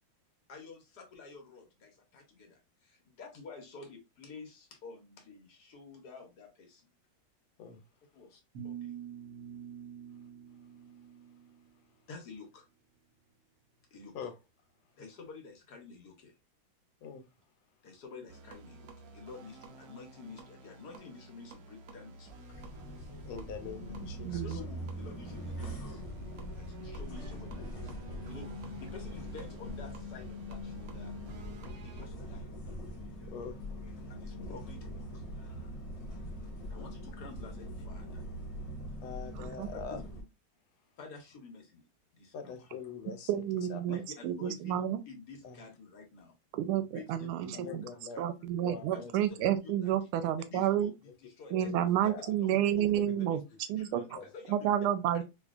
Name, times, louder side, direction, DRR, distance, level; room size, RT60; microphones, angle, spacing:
voice 1, 0.5-6.9 8.1-9.0 12.1-12.7 13.9-14.1 15.0-16.3 17.8-22.8 24.4-26.0 26.5-28.0 28.3-31.1 31.8-32.7 34.1-35.3 36.7-38.2 39.7-40.0 41.0-41.8 42.1-42.6 43.9-44.8 45.1-46.3 46.9-47.8 48.1-48.2 48.9-49.1 49.6-49.9 50.2-52.1 52.4-52.9 53.2-53.4 53.7-54.5 55.1-55.2, left 4 dB, 60° left, 1.2 m, -50 dB
sound 1, 8.5-11.7, right 9 dB, 50° right, 1.3 m, -46 dB
sound 2, 18.3-32.1, right 2 dB, 70° right, 0.8 m, -52 dB
sound 3, 22.5-40.2, equal, 40° left, 1.1 m, -42 dB
voice 2, 23.3-24.6 33.3-33.6 39.0-40.0 42.3-43.4 43.7-44.0 45.4-45.6 47.5-48.2 48.6-49.5 50.2-50.3 50.6-50.7 51.0-51.1 51.5-51.6 52.1-52.3 52.9-53.3 54.1-54.3, left 6 dB, 80° left, 1.6 m, -44 dB
voice 3, 24.2-24.6 39.4-39.7 43.3-45.0 46.5-47.8 48.2-50.9 51.5-53.4 53.7-54.0 54.5-55.2, right 11 dB, 90° right, 1.4 m, -30 dB
4.2 x 2.7 x 2.4 m
omnidirectional pair, 2.3 m